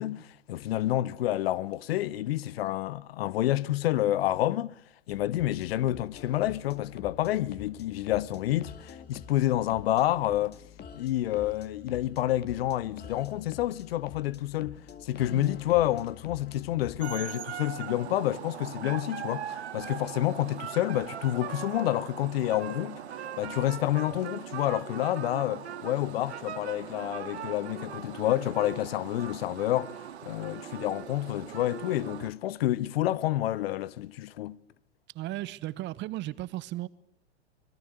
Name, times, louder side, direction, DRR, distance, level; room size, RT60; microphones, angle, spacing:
voice 1, 0.0-4.7 5.1-10.6 10.9-23.0 23.4-34.6, left 14 dB, 60° left, 0.9 m, -29 dB
sound 1, 5.1-17.0, left 7 dB, 30° left, 2.2 m, -48 dB
voice 2, 15.3-15.6 35.1-36.9, right 16 dB, 35° right, 1.0 m, -35 dB
sound 2, 17.0-32.3, right 9 dB, 75° right, 2.0 m, -40 dB
25.5 x 20.5 x 8.0 m
hypercardioid pair, 100°, 34 cm